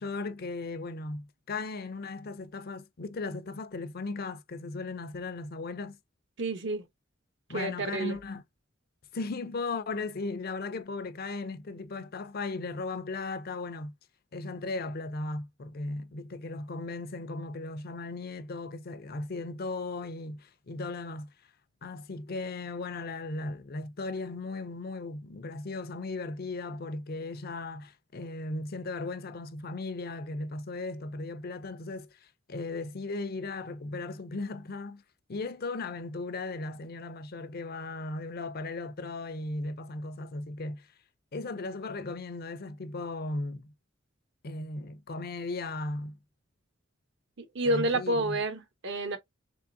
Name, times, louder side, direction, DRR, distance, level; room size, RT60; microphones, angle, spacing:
voice 1, 0.0-6.0 7.5-8.4 9.1-14.0 14.3-21.3 21.8-35.0 35.3-40.9 41.3-43.7 44.4-46.2 47.6-48.4, left 3 dB, 50° left, 0.5 m, -37 dB
voice 2, 6.4-6.8 7.5-8.2 47.4-49.2, right 1 dB, 65° right, 0.9 m, -29 dB
3.6 x 3.4 x 2.6 m
head